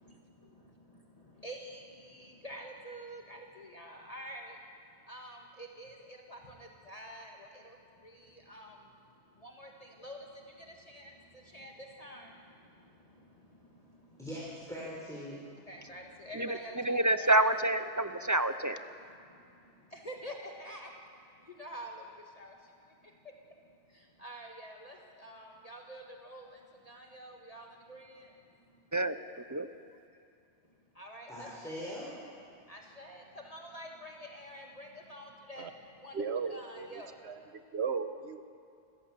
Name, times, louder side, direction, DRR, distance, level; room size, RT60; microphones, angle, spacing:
voice 1, 0.0-14.2 15.6-17.5 18.2-18.3 19.0-28.9 30.1-30.2 30.6-31.5 31.8-32.0 32.5-37.5, equal, 35° left, 0 dB, 1.8 m, -49 dB
voice 2, 14.2-15.4 31.3-32.1, equal, 5° left, -7 dB, 4.4 m, -41 dB
voice 3, 16.8-18.8 28.9-29.7, right 1 dB, 20° right, 10 dB, 0.6 m, -28 dB
voice 4, 36.1-36.9 37.2-37.3 37.7-38.4, right 6 dB, 70° right, 9 dB, 1.4 m, -35 dB
28.5 x 14.5 x 7.4 m, 2.5 s
omnidirectional pair, 1.1 m